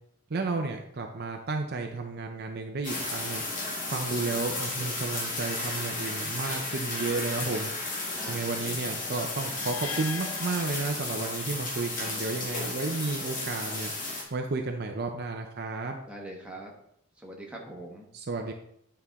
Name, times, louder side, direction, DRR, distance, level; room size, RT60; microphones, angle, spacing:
voice 1, 0.3-3.4 3.9-7.7 8.3-13.9 14.3-16.0 18.1-18.5, right 3 dB, 45° right, 3 dB, 0.6 m, -32 dB
sound 1, 2.8-14.2, left 2 dB, 35° left, 1.5 m, -34 dB
voice 2, 8.1-9.0 12.0-12.7 16.1-16.7 17.2-18.1, right 1 dB, 5° right, -2 dB, 1.2 m, -43 dB
sound 2, 9.5-11.6, left 9 dB, 60° left, 0.5 m, -42 dB
8.8 x 4.4 x 3.5 m, 0.72 s
head